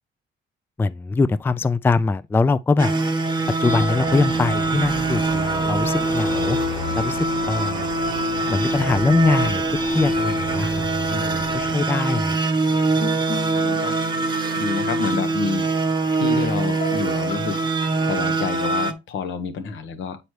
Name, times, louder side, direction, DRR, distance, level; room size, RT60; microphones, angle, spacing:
voice 1, 0.8-2.9 3.6-6.6 6.9-7.9 8.5-9.6 9.9-12.4, left 3 dB, 10° left, 0.3 m, -22 dB
sound 1, 2.8-18.9, right 3 dB, 20° right, 1.1 m, -23 dB
Car passing by / Traffic noise roadway noise / Engine, 3.6-11.8, left 4 dB, 30° left, 0.9 m, -34 dB
sound 2, 12.7-18.7, left 3 dB, 55° left, 2.4 m, -38 dB
voice 2, 13.5-14.0 14.5-15.7 16.1-17.6 18.0-20.2, left 5 dB, 80° left, 1.2 m, -28 dB
7.9 x 4.1 x 3.2 m
cardioid pair, 90°, 20 cm